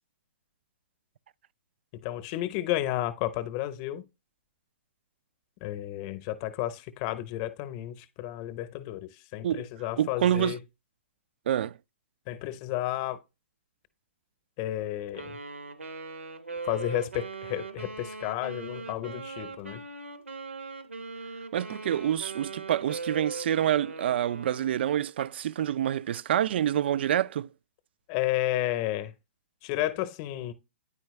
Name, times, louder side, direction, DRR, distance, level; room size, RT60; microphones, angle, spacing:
voice 1, 1.9-4.0 5.6-10.6 12.3-13.2 14.6-15.4 16.6-19.8 28.1-29.1 29.6-30.5, left 14 dB, 35° left, 0.8 m, -32 dB
voice 2, 10.0-10.6 11.5-11.7 21.5-27.5, right 10 dB, 60° right, 0.3 m, -27 dB
Wind instrument woodwind instrument, 15.1-24.7, right 4 dB, 85° right, 1.2 m, -40 dB
9.7 x 4.5 x 3.1 m
hypercardioid pair, 125°, 7 cm